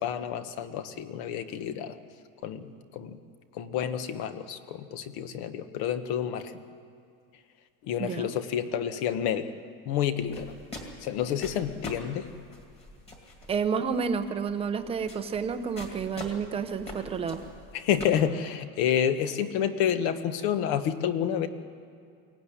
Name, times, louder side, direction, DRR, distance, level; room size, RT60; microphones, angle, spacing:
voice 1, 0.0-2.0 2.4-3.2 3.5-6.5 7.8-9.5 9.8-10.5 11.0-12.3 17.7-21.5, left 9 dB, 50° left, 10 dB, 1.3 m, -29 dB
voice 2, 8.0-8.3 13.5-17.4, right 6 dB, 15° right, 8 dB, 0.7 m, -30 dB
sound 1, 10.2-18.1, left 2 dB, 15° left, 2.3 m, -45 dB
23.0 x 17.0 x 10.0 m, 2.3 s
cardioid pair, 175°, 42 cm